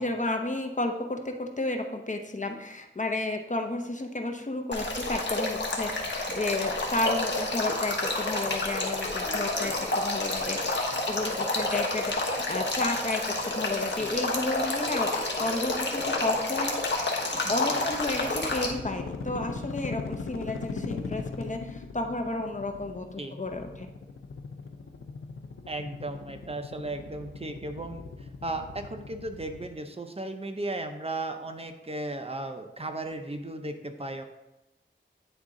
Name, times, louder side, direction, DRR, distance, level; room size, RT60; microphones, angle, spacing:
voice 1, 0.0-15.1 15.4-17.1 17.5-23.9, left 2 dB, 35° left, 4 dB, 0.8 m, -32 dB
Male speech man speaking / Stream / Trickle dribble, 4.7-18.7, left 2 dB, 60° left, 1.1 m, -29 dB
voice 2, 10.6-11.1 14.0-14.2 17.4-17.8 23.2-23.4 25.7-34.2, right 2 dB, 30° right, 6 dB, 0.7 m, -36 dB
sound 1, 17.9-29.7, left 4 dB, 85° left, 0.5 m, -40 dB
9.0 x 3.6 x 3.8 m, 0.99 s
wide cardioid pair, 55°, 21 cm